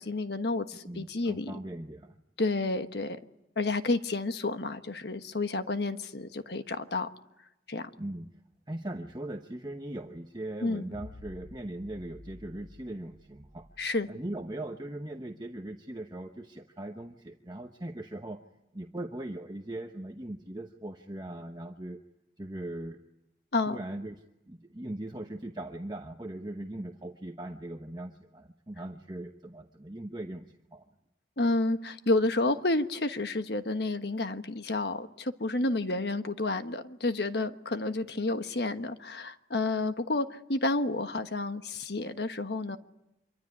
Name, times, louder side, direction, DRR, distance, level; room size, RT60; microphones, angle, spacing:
voice 1, 0.0-1.5 2.4-3.2 3.6-7.1 7.7-7.9 10.6-10.9 13.8-14.1 23.5-23.8 31.4-42.8, left 2 dB, 65° left, 1.3 m, -30 dB
voice 2, 0.9-2.2 8.0-8.3 8.7-13.7 14.1-18.4 18.7-22.0 22.4-23.0 23.7-30.8, right 1 dB, 25° right, 1.0 m, -40 dB
sound 1, 10.9-14.3, left 1 dB, 85° left, 4.5 m, -51 dB
26.0 x 23.5 x 9.7 m
head